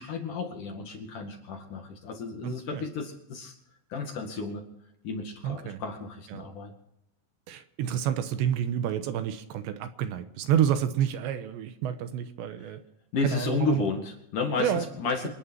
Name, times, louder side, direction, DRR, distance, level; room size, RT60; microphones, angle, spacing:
voice 1, 0.0-3.5 3.9-4.6 5.0-6.7 13.1-15.3, left 4 dB, 50° left, 3 dB, 3.1 m, -32 dB
voice 2, 2.4-2.9 5.4-5.8 6.3-6.5 7.5-12.8 13.2-13.8 14.6-14.9, right 9 dB, 75° right, 10 dB, 3.1 m, -29 dB
27.0 x 11.0 x 4.6 m, 0.82 s
omnidirectional pair, 5.3 m